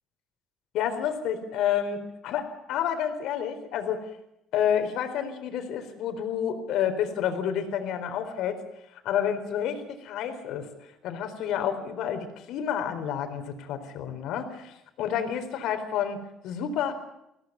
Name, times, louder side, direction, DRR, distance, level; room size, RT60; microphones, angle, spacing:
voice 1, 0.7-4.0 4.5-8.6 8.9-10.7 11.0-16.2 16.4-16.9, left 9 dB, 75° left, 7 dB, 4.1 m, -29 dB
22.5 x 17.0 x 9.5 m, 0.85 s
cardioid pair, 105°, 0 cm